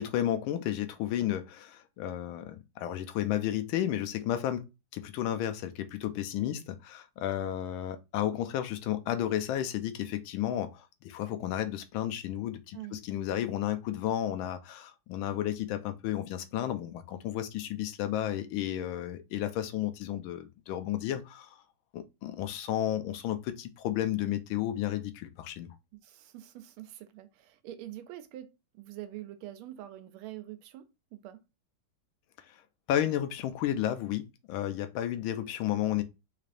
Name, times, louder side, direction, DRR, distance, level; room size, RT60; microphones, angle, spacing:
voice 1, 0.0-4.6 4.9-21.6 21.9-25.7 32.5-32.6 32.9-36.0, left 11 dB, 80° left, 1.3 m, -32 dB
voice 2, 26.0-31.4, right 13 dB, 85° right, 1.4 m, -45 dB
3.7 x 3.3 x 2.5 m
omnidirectional pair, 2.3 m